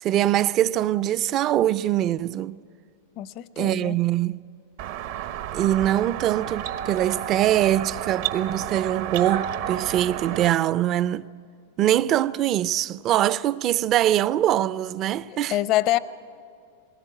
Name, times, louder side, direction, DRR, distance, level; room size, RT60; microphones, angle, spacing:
voice 1, 0.0-2.6 3.6-4.4 5.5-11.3 11.8-15.6, right 12 dB, 40° right, 0.4 m, -23 dB
voice 2, 3.2-4.0 15.3-16.0, left 15 dB, 45° left, 0.7 m, -25 dB
sound 1, 4.8-10.5, right 10 dB, 60° right, 0.8 m, -31 dB
20.0 x 18.0 x 9.0 m
hypercardioid pair, 110°, 0 cm